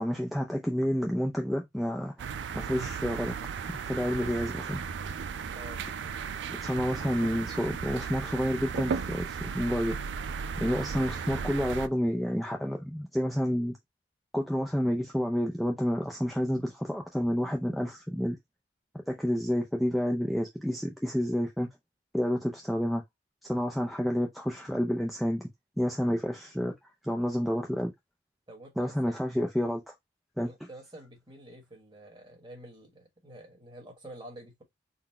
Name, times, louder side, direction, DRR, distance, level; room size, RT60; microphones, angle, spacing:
voice 1, 0.0-2.3 2.5-3.4 3.7-4.8 6.6-10.0 10.6-13.8 14.3-18.4 19.1-21.7 22.1-23.0 23.4-25.5 25.8-26.8 27.0-27.9 28.8-29.9 30.4-30.5, equal, ahead, 0.4 m, -29 dB
sound 1, 2.2-11.9, right 6 dB, 70° right, 0.4 m, -35 dB
voice 2, 28.5-29.2 30.4-34.6, right 1 dB, 25° right, 1.2 m, -48 dB
4.0 x 2.1 x 4.2 m
head